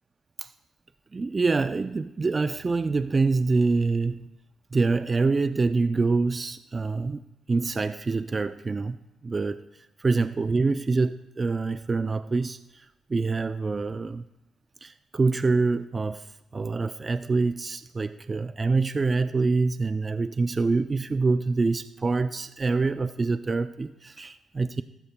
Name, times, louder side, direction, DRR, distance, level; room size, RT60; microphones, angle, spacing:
voice 1, 1.1-4.3 4.7-7.2 7.5-9.6 10.0-14.2 14.8-16.3 16.5-24.8, right 3 dB, 30° right, 11 dB, 0.4 m, -26 dB
22.0 x 13.0 x 2.2 m, 0.98 s
cardioid pair, 90°, 0 cm